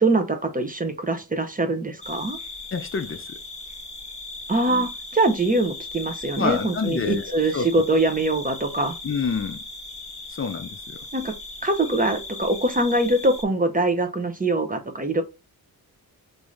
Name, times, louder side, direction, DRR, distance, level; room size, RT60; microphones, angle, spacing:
voice 1, 0.0-2.4 4.5-9.0 11.1-11.3 11.6-15.2, right 2 dB, 20° right, 0.6 m, -23 dB
sound 1, 2.0-13.4, left 3 dB, 15° left, 0.8 m, -38 dB
voice 2, 2.7-3.4 6.4-7.7 9.0-9.6 10.3-11.1, left 5 dB, 35° left, 0.5 m, -28 dB
3.5 x 2.6 x 3.1 m
cardioid pair, 80°, 39 cm